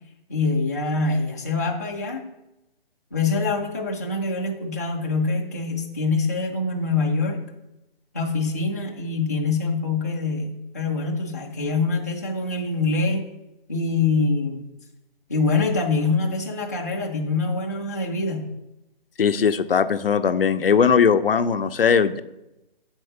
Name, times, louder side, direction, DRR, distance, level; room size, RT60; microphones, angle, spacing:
voice 1, 0.3-2.3 3.1-7.4 8.1-13.2 13.7-14.6 15.3-18.5, left 3 dB, 15° left, -2 dB, 0.6 m, -24 dB
voice 2, 19.2-22.2, left 6 dB, 70° left, 11 dB, 0.6 m, -19 dB
7.8 x 4.4 x 6.6 m, 0.92 s
hypercardioid pair, 170°, 29 cm